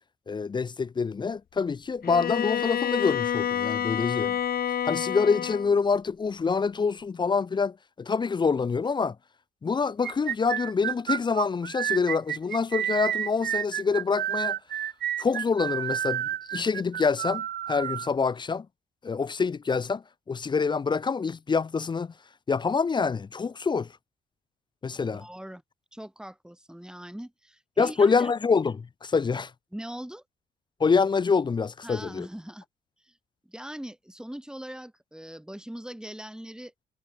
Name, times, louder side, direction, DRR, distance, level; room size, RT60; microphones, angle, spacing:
voice 1, 0.3-4.4 4.8-9.2 9.6-14.6 15.2-18.7 19.0-22.1 22.5-23.9 24.8-25.2 27.8-29.5 30.8-32.3, left 5 dB, 25° left, 0.4 m, -26 dB
Bowed string instrument, 2.0-5.8, left 9 dB, 50° left, 0.8 m, -28 dB
sound 1, 10.0-18.1, right 11 dB, 55° right, 0.7 m, -30 dB
voice 2, 25.1-25.6 25.9-28.3 29.7-30.2 31.8-32.6 33.0-33.1 33.4-36.7, right 1 dB, 5° right, 3.3 m, -41 dB
cardioid pair, 90°, 20 cm